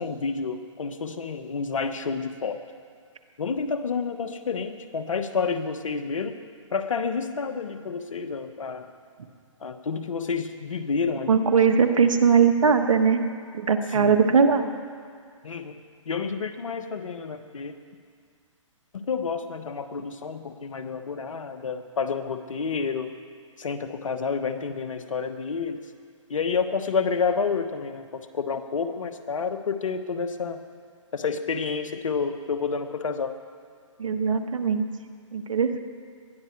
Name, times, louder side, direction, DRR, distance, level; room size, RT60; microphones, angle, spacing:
voice 1, 0.0-2.6 3.4-6.4 6.7-8.9 9.6-11.4 13.9-14.1 15.4-15.8 16.0-17.8 18.9-23.1 23.6-25.8 26.3-30.6 31.1-33.4, left 5 dB, 75° left, 9 dB, 1.2 m, -29 dB
voice 2, 11.3-13.2 13.5-14.7 34.0-34.9 35.3-35.8, right 6 dB, 75° right, 7 dB, 1.4 m, -20 dB
20.0 x 12.0 x 4.6 m, 2.1 s
hypercardioid pair, 140°, 17 cm